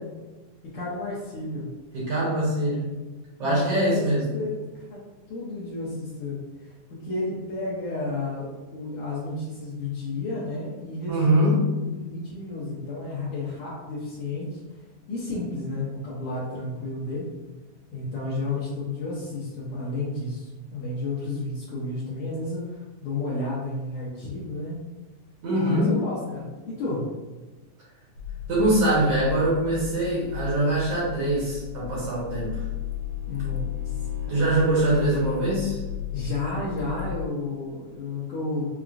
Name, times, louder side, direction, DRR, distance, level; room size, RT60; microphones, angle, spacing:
voice 1, 0.6-1.7 3.4-5.0 5.3-11.4 11.8-14.6 15.1-17.3 17.9-24.8 25.6-27.1 33.3-33.9 34.2-34.8 36.1-38.7, left 2 dB, 75° left, -8 dB, 2.1 m, -32 dB
voice 2, 1.9-2.8 3.4-4.2 11.1-11.6 25.4-26.0 28.5-32.5 34.3-35.8, right 1 dB, 70° right, -7 dB, 1.5 m, -23 dB
sound 1, 28.2-37.3, left 11 dB, 90° left, 2.4 m, -35 dB
Bowed string instrument, 31.9-35.7, right 2 dB, 85° right, 2.3 m, -44 dB
5.8 x 2.1 x 2.5 m, 1.2 s
omnidirectional pair, 3.8 m